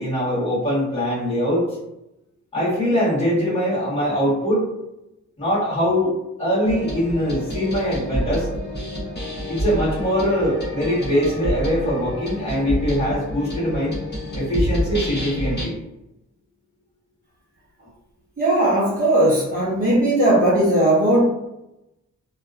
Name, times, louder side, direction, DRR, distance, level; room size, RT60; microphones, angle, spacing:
voice 1, 0.0-1.6 2.5-4.7 5.4-6.1 6.4-8.5 9.5-13.9 14.3-15.7, equal, 20° left, -9 dB, 1.4 m, -22 dB
sound 1, 6.6-15.6, equal, 35° left, 1.0 m, -28 dB
voice 2, 18.4-21.3, right 1 dB, 30° right, -8 dB, 0.7 m, -18 dB
2.7 x 2.2 x 2.4 m, 0.89 s
wide cardioid pair, 145°, 29 cm